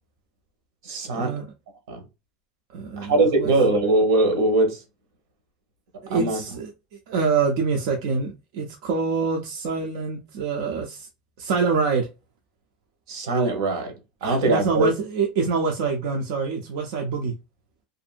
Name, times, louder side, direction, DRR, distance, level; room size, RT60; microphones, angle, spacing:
voice 1, 0.8-1.4 1.9-2.0 3.0-4.8 6.1-6.4 13.1-13.9 14.2-14.9, right 2 dB, 80° right, 1.1 m, -21 dB
voice 2, 2.7-3.5 6.0-6.7 7.1-11.1 11.4-12.1 14.2-17.3, right 5 dB, 60° right, 0.6 m, -25 dB
2.6 x 2.5 x 2.4 m
supercardioid pair, 175°, 2 cm